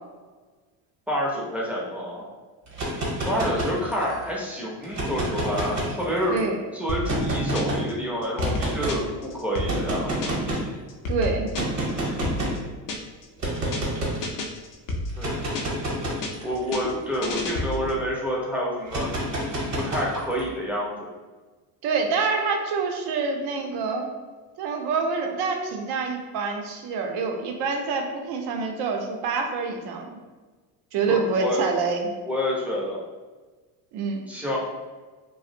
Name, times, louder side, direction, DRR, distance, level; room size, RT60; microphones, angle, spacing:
voice 1, 1.1-2.3 3.3-6.4 6.7-10.3 15.2-15.5 16.4-19.1 19.8-21.1 31.1-31.7 32.3-33.0 34.3-34.6, equal, 5° right, -5 dB, 0.5 m, -28 dB
sound 1, 2.7-4.2 4.8-6.4 7.0-7.8 8.4-9.0 9.6-10.7 11.5-12.6 13.4-14.2 15.1-17.9 18.9-20.4, right 1 dB, 35° right, 0.9 m, -29 dB
voice 2, 6.3-6.6 11.1-11.5 21.8-24.1 24.6-30.1 30.9-32.1 33.9-34.2, right 4 dB, 60° right, 3 dB, 0.6 m, -26 dB
sound 2, 6.9-7.9 8.2-10.6 10.9-13.2 13.5-13.9 14.2-15.9 16.2-18.0, left 2 dB, 45° left, 0.5 m, -31 dB
2.4 x 2.0 x 2.6 m, 1.3 s
supercardioid pair, 90°, 46 cm